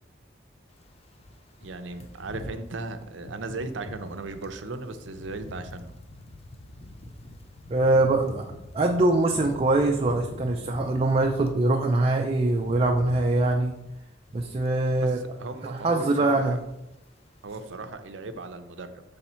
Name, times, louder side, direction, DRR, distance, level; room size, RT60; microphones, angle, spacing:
sound 1, 0.8-11.7 12.1-15.5 15.7-16.0 16.3-17.1 17.4-17.6, left 2 dB, 35° left, 0.5 m, -44 dB
voice 1, 1.6-5.9 15.0-16.6 17.4-19.0, right 3 dB, 75° right, 8 dB, 0.6 m, -37 dB
voice 2, 7.7-8.5 8.7-13.7 14.3-15.2 15.7-16.6, right 2 dB, 30° right, 2 dB, 0.4 m, -23 dB
6.9 x 3.5 x 4.3 m, 0.90 s
head